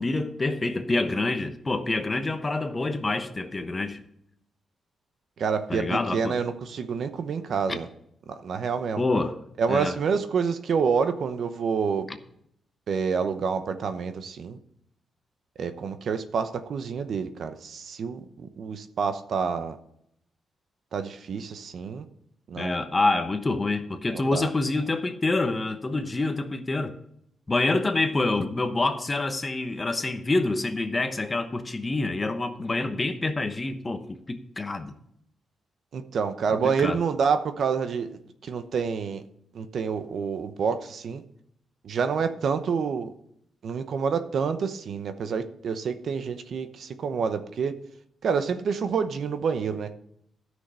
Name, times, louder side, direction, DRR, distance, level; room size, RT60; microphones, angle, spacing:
voice 1, 0.0-4.0 5.7-6.4 7.7-7.8 9.0-9.4 9.7-10.0 12.1-12.2 22.6-26.9 27.5-34.9 36.6-37.0, left 2 dB, 20° left, 8 dB, 1.0 m, -27 dB
voice 2, 5.4-7.9 8.3-9.0 9.6-12.1 12.9-14.6 15.6-19.8 20.9-22.0 22.5-22.8 24.1-24.5 35.9-38.1 38.4-39.2 39.5-41.2 41.8-43.1 43.6-47.8 48.2-50.0, right 6 dB, 60° right, 9 dB, 0.9 m, -28 dB
13.5 x 6.3 x 5.6 m, 0.73 s
wide cardioid pair, 140°, 0 cm